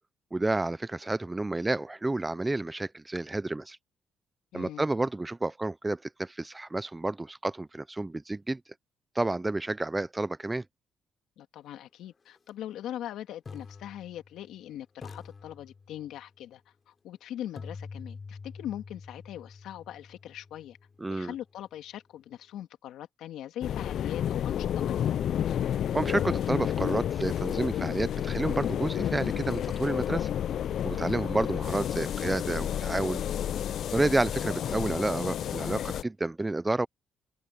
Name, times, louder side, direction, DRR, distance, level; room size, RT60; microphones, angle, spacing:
voice 1, 0.3-3.8 4.5-8.6 9.2-10.6 21.0-21.3 25.9-30.3 30.8-33.2 33.9-36.9, right 2 dB, 15° right, 0.4 m, -30 dB
voice 2, 4.5-4.8 11.4-16.6 16.9-20.8 21.1-25.2 31.0-31.3, left 11 dB, 85° left, 2.3 m, -41 dB
sound 1, 12.4-12.5 13.5-14.6 15.0-16.3 17.6-21.5, left 4 dB, 35° left, 7.4 m, -46 dB
sound 2, 23.6-36.0, left 10 dB, 65° left, 0.3 m, -30 dB
open air
cardioid pair, 90°, 0 cm